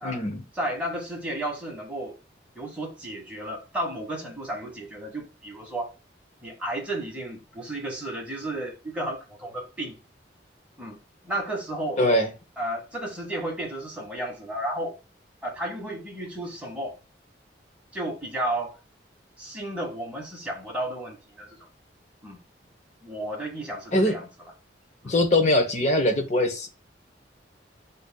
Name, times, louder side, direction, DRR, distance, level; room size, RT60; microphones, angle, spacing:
voice 1, 0.0-0.4 12.0-12.3 23.9-24.2 25.0-26.7, left 1 dB, 40° left, 0.8 m, -22 dB
voice 2, 0.5-2.2 2.5-5.9 6.4-10.0 10.8-11.0 11.2-12.0 12.6-15.0 15.4-16.9 17.9-18.7 19.4-21.6 22.2-22.4 23.0-24.3 25.0-25.1, right 1 dB, 5° right, 1.4 m, -33 dB
7.9 x 2.6 x 2.3 m
head